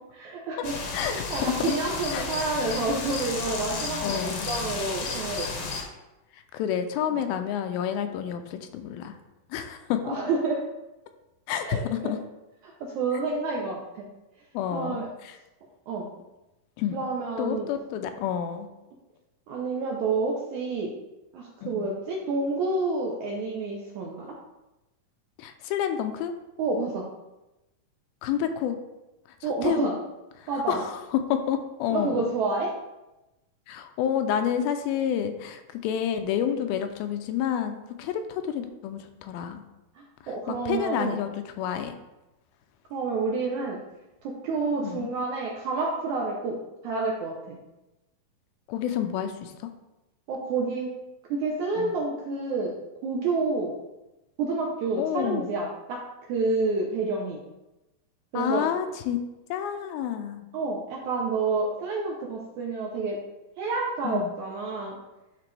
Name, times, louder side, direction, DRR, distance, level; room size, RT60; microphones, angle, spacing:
voice 1, 0.2-5.7 7.1-7.2 10.0-10.6 11.6-12.1 12.8-14.1 14.7-15.1 15.9-16.1 16.9-17.7 19.5-20.9 21.3-24.3 26.6-27.1 29.4-29.9 30.5-30.8 31.9-32.7 39.9-41.2 42.9-43.8 44.2-46.6 46.8-47.6 50.3-50.9 51.3-52.7 53.0-53.7 54.4-56.0 56.3-57.4 58.3-58.6 60.5-63.2 63.6-65.0, right 3 dB, 75° right, -1 dB, 1.8 m, -29 dB
sound 1, 0.6-5.8, left 4 dB, 70° left, 1.7 m, -33 dB
voice 2, 0.9-1.7 2.1-2.3 4.0-4.5 6.3-9.2 9.5-10.2 11.5-12.2 14.5-15.4 16.8-17.0 17.4-18.7 21.6-21.9 25.4-26.3 28.2-28.8 29.4-29.9 30.4-32.3 33.7-39.6 40.2-41.9 44.8-45.1 48.7-49.7 51.8-51.9 55.0-55.6 58.3-59.2 59.5-60.5 64.0-64.3, left 9 dB, 85° left, 8 dB, 2.4 m, -29 dB
11.0 x 3.7 x 3.3 m, 0.99 s
omnidirectional pair, 4.3 m